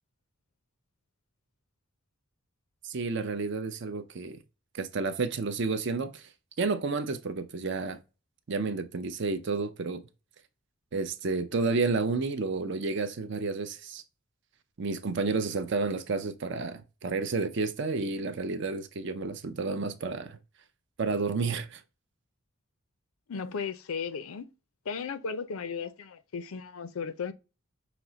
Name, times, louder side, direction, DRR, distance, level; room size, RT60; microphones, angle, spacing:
voice 1, 2.8-4.4 4.7-6.3 6.6-8.0 8.5-10.0 10.9-14.0 14.8-20.4 21.0-21.8, right 4 dB, 55° right, 0.5 m, -31 dB
voice 2, 23.3-24.5 24.9-27.3, left 5 dB, 75° left, 0.5 m, -35 dB
5.9 x 2.1 x 3.8 m
head